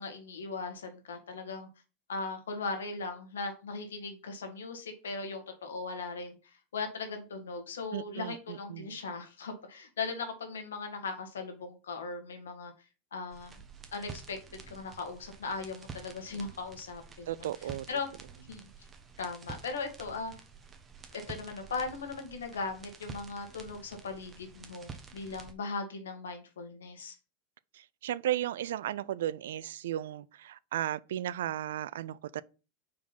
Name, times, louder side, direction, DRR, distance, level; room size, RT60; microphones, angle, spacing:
voice 1, 0.0-1.7 2.1-12.7 13.1-13.6 13.9-18.1 18.5-18.7 19.2-20.3 21.1-27.1, left 4 dB, 90° left, 1.6 m, -38 dB
voice 2, 7.9-9.0 17.3-17.9 27.7-32.4, right 12 dB, 80° right, 0.3 m, -35 dB
sound 1, 13.3-25.5, right 5 dB, 25° right, 1.1 m, -49 dB
4.7 x 3.7 x 5.7 m
hypercardioid pair, 110°, 0 cm